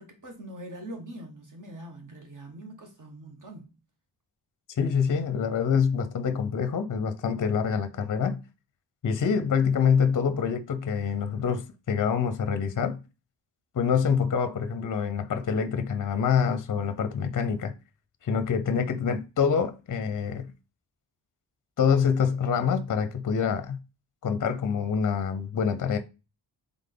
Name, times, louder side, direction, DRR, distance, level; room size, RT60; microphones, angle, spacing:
voice 1, 0.0-3.7, right 1 dB, 40° right, 1.4 m, -43 dB
voice 2, 4.8-8.4 9.0-13.0 13.7-17.7 18.2-20.5 21.8-23.8 24.2-26.0, left 6 dB, 45° left, 0.6 m, -26 dB
3.7 x 3.5 x 3.8 m
wide cardioid pair, 140°, 45 cm